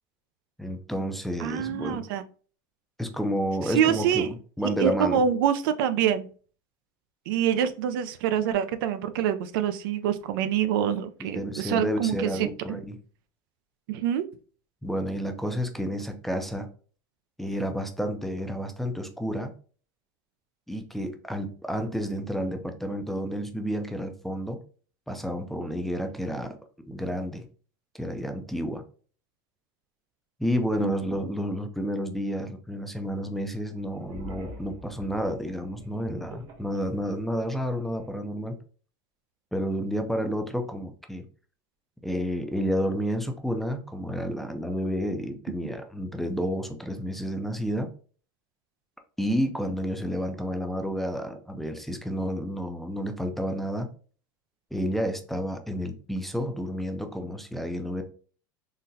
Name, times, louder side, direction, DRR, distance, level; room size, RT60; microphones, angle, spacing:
voice 1, 0.6-2.0 3.0-4.3 4.6-5.2 11.3-13.0 14.8-16.7 17.4-19.5 20.7-24.6 25.1-26.6 26.9-27.5 27.9-28.8 30.4-38.6 39.5-41.3 42.0-47.9 49.2-53.9 54.7-58.0, equal, ahead, 6 dB, 0.4 m, -30 dB
voice 2, 1.4-2.2 3.6-4.3 4.6-6.3 7.3-12.5 13.9-14.3 30.8-30.9, right 9 dB, 80° right, 11 dB, 0.4 m, -25 dB
sound 1, 33.7-38.1, equal, 55° right, 1.2 m, -45 dB
3.9 x 2.1 x 2.6 m, 0.41 s
supercardioid pair, 130°, 11 cm